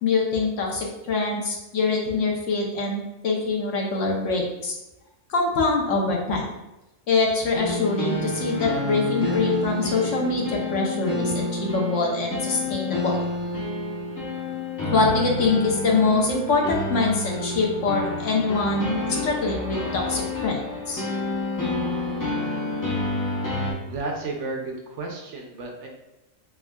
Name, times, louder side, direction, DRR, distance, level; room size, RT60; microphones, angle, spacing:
voice 1, 0.0-4.8 5.3-6.4 7.1-13.2 14.9-20.6 20.9-21.0, left 3 dB, 70° left, -1 dB, 1.0 m, -24 dB
sound 1, 7.6-23.7, left 2 dB, 30° left, 0.4 m, -29 dB
sound 2, 7.7-10.8, right 1 dB, 35° right, 0.5 m, -42 dB
voice 2, 23.8-25.9, right 3 dB, 70° right, 1 dB, 0.9 m, -32 dB
3.5 x 3.3 x 2.2 m, 0.95 s
omnidirectional pair, 1.4 m